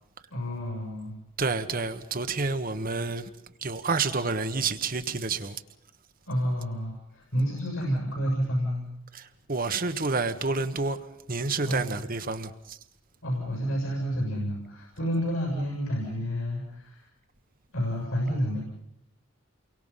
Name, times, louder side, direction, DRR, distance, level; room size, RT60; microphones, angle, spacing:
voice 1, 0.3-1.2 6.3-8.8 11.6-11.9 13.2-17.1 17.7-18.6, equal, 90° left, 7.0 m, -29 dB
voice 2, 1.4-3.3 3.6-5.6 9.1-11.0 11.3-12.8, right 4 dB, 45° right, 1.2 m, -29 dB
30.0 x 23.5 x 5.7 m
head